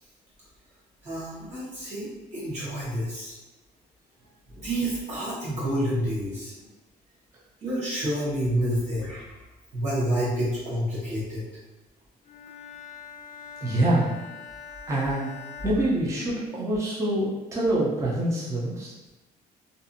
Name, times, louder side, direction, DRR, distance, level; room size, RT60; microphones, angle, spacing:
voice 1, 1.0-3.4 4.6-6.5 7.6-9.4 9.7-11.4, right 1 dB, 45° right, -9 dB, 1.1 m, -28 dB
Bowed string instrument, 12.2-16.7, left 5 dB, 45° left, 0.5 m, -44 dB
voice 2, 13.6-14.2 14.9-15.3 15.6-18.9, right 1 dB, 15° right, -5 dB, 0.5 m, -25 dB
2.6 x 2.4 x 2.6 m, 1.1 s
cardioid pair, 110°, 17 cm